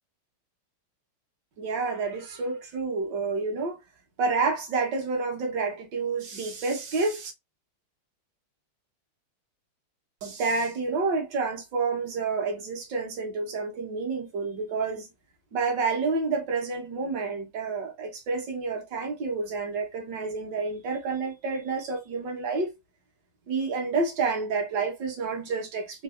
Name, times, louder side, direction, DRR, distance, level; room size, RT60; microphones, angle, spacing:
voice 1, 1.6-3.8 4.2-7.3 10.2-15.1 15.5-22.7 23.5-26.0, right 4 dB, 60° right, 1.5 m, -29 dB
3.9 x 2.6 x 2.4 m
omnidirectional pair, 2.4 m